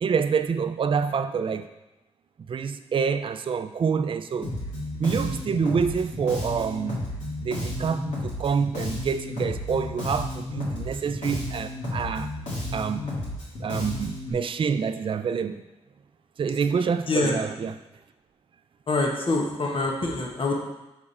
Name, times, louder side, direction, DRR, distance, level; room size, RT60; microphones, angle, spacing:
voice 1, 0.0-1.7 2.5-4.5 5.0-7.0 7.4-12.3 12.7-13.1 13.6-15.6 16.4-17.8, right 6 dB, 50° right, 10 dB, 0.4 m, -27 dB
Bass guitar, 4.4-14.3, left 1 dB, 90° left, 2.3 m, -32 dB
voice 2, 17.1-17.4 18.9-20.5, left 2 dB, 50° left, -1 dB, 1.2 m, -25 dB
6.4 x 4.8 x 4.2 m, 0.98 s
cardioid pair, 70°, 12 cm